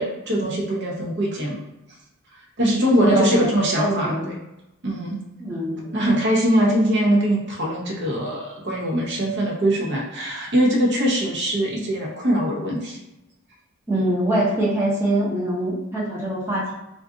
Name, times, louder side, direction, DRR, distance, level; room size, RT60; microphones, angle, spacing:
voice 1, 0.0-1.6 2.6-4.3 4.8-5.2 5.9-13.0, equal, 55° right, -3 dB, 0.8 m, -22 dB
voice 2, 3.0-3.3 3.8-4.3 5.4-5.8 13.9-16.7, right 1 dB, 10° right, -7 dB, 0.7 m, -23 dB
2.4 x 2.4 x 3.6 m, 0.93 s
head